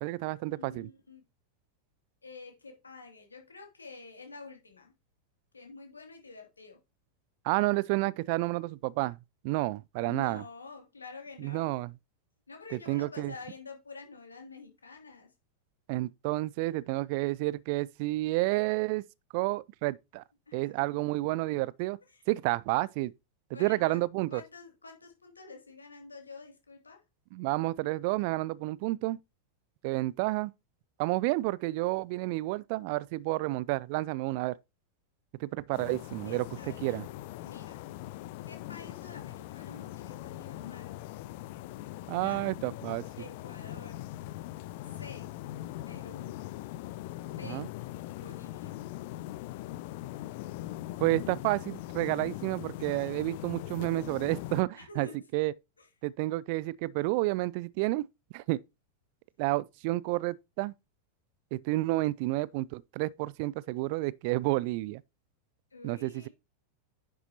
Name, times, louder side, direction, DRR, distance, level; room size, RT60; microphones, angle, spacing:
voice 1, 0.0-0.9 7.4-9.2 9.4-10.4 11.4-11.9 12.7-13.3 15.9-19.1 19.3-20.2 20.5-22.0 22.3-23.1 23.6-24.4 27.3-29.2 29.8-30.5 31.0-34.5 35.4-36.5 36.8-37.0 42.1-43.0 47.5-47.7 51.0-55.1 55.3-55.5 56.0-58.1 58.3-58.6 59.4-60.7 61.5-65.0 65.8-66.3, right 20 dB, 45° right, 0.4 m, -30 dB
voice 2, 0.5-1.2 2.2-4.9 5.5-6.8 10.0-11.8 12.5-15.3 20.5-20.7 22.1-22.2 23.5-24.0 24.3-27.0 36.3-37.8 38.5-40.9 42.2-42.5 43.2-44.0 44.8-45.3 45.9-46.4 47.3-47.7 48.2-48.8 54.7-55.2 55.8-55.9 65.7-66.3, left 4 dB, 75° left, 2.6 m, -48 dB
sound 1, 35.7-54.6, left 15 dB, 50° left, 0.4 m, -41 dB
10.0 x 6.8 x 2.9 m
figure-of-eight pair, 90°, 0 cm